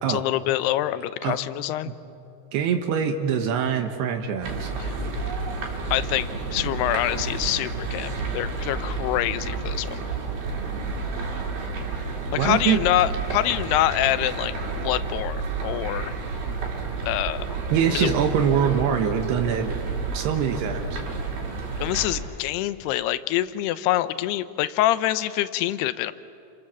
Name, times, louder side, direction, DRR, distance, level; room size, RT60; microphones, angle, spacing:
voice 1, 0.1-1.9 4.8-4.9 5.9-10.0 12.3-14.5 14.8-16.1 17.0-17.5 17.9-18.1 21.8-26.1, left 14 dB, 80° left, 14 dB, 2.7 m, -25 dB
voice 2, 2.5-4.7 12.4-12.8 17.7-19.7 20.1-21.0, right 8 dB, 80° right, 5 dB, 3.2 m, -23 dB
sound 1, 4.4-22.1, right 4 dB, 60° right, 4.9 m, -30 dB
29.5 x 27.0 x 7.5 m, 2.8 s
omnidirectional pair, 4.7 m